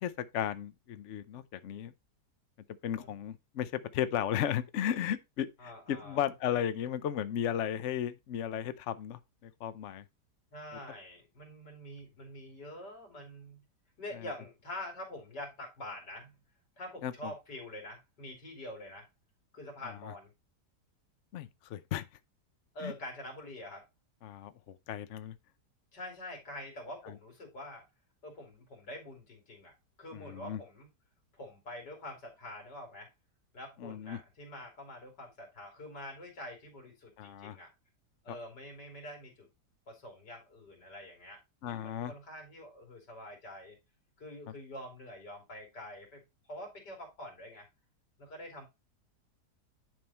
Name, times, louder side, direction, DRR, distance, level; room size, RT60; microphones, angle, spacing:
voice 1, 0.0-1.9 2.8-10.0 14.2-14.3 17.0-17.3 21.3-22.1 22.8-22.9 24.2-25.3 27.0-27.1 30.1-30.6 33.8-34.2 37.2-37.6 38.3-38.4 41.6-42.1, left 10 dB, 60° left, 0.8 m, -35 dB
voice 2, 5.6-6.2 10.5-13.6 14.0-16.4 16.8-19.1 19.5-20.3 22.7-23.8 25.9-27.8 28.2-29.7 30.0-30.9 31.3-33.1 33.5-37.7 38.2-39.5 39.9-43.8 44.2-46.2 46.5-47.7 48.2-48.7, left 1 dB, 85° left, 3.6 m, -46 dB
10.5 x 3.7 x 4.2 m
omnidirectional pair, 1.8 m